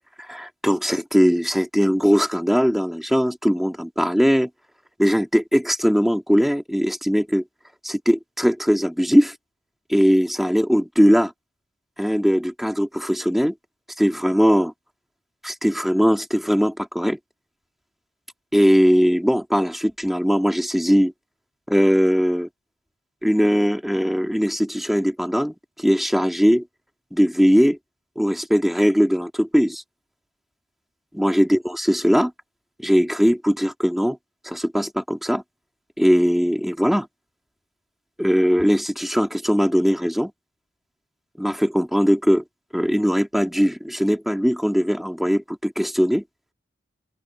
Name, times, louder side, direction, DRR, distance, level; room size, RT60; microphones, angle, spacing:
voice 1, 0.3-4.5 5.0-7.4 7.8-9.3 9.9-11.3 12.0-13.5 14.0-14.7 15.4-17.2 18.5-21.1 21.7-22.5 23.2-26.6 27.1-27.8 28.2-29.8 31.1-32.3 32.8-34.2 34.4-35.4 36.0-37.1 38.2-40.3 41.4-42.4 42.7-46.2, equal, ahead, 2.3 m, -20 dB
open air
head